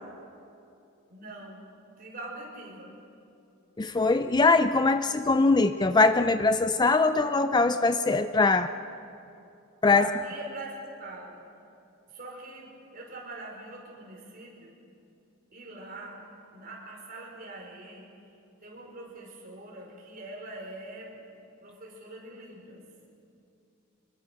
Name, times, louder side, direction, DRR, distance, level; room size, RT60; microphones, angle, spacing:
voice 1, 1.1-1.6 2.0-2.9 9.8-11.4 12.1-14.7 15.5-16.2 16.5-18.1 18.6-21.1 21.6-22.8, right 2 dB, 45° right, -1 dB, 5.2 m, -43 dB
voice 2, 3.8-8.7 9.8-10.1, left 3 dB, 20° left, 10 dB, 0.4 m, -22 dB
25.0 x 21.5 x 6.5 m, 2.7 s
head